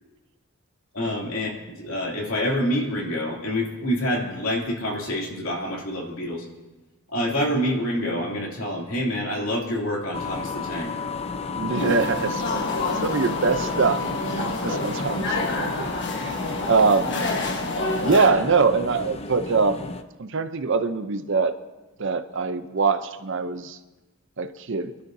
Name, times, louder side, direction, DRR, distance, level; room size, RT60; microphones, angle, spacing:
voice 1, 0.9-6.4 7.1-10.9, equal, 70° left, -1 dB, 2.8 m, -27 dB
sound 1, 10.1-20.0, left 4 dB, 30° left, 0.6 m, -32 dB
voice 2, 11.5-14.0 14.3-15.9 16.2-16.4 16.7-17.3 18.0-21.5 22.0-23.8 24.4-24.9, right 4 dB, 55° right, 10 dB, 0.7 m, -23 dB
sound 2, 11.8-18.3, left 2 dB, 55° left, 1.3 m, -28 dB
24.5 x 12.0 x 2.7 m, 1.1 s
head